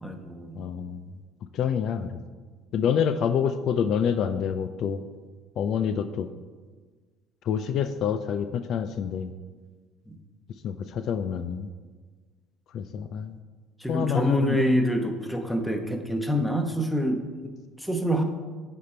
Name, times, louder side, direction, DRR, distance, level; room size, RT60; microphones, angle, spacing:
voice 1, 0.0-0.7 10.1-10.2 13.8-17.5 17.8-18.2, equal, 5° left, 5 dB, 1.0 m, -26 dB
voice 2, 0.5-1.0 1.5-2.1 2.7-5.0 5.6-6.3 7.4-9.3 10.6-11.7 12.7-13.4 13.9-14.8, left 8 dB, 60° left, 10 dB, 0.4 m, -27 dB
8.3 x 4.3 x 4.4 m, 1.4 s
supercardioid pair, 90°, 0 cm